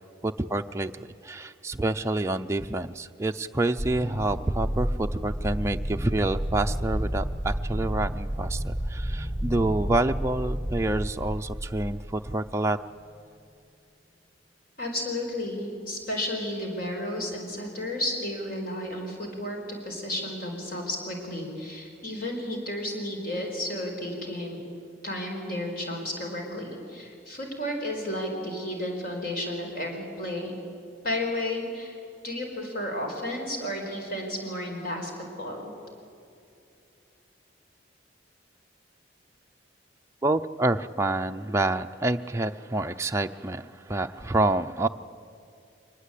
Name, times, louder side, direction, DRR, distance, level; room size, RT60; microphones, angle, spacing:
voice 1, 0.2-12.8 40.2-44.9, right 2 dB, 15° right, 5 dB, 0.5 m, -28 dB
sound 1, 3.8-12.0, equal, 20° left, 4.5 m, -31 dB
voice 2, 14.8-24.6 25.0-30.5 31.0-35.7, left 1 dB, 50° left, 1 dB, 4.8 m, -32 dB
23.5 x 20.0 x 8.4 m, 2.6 s
head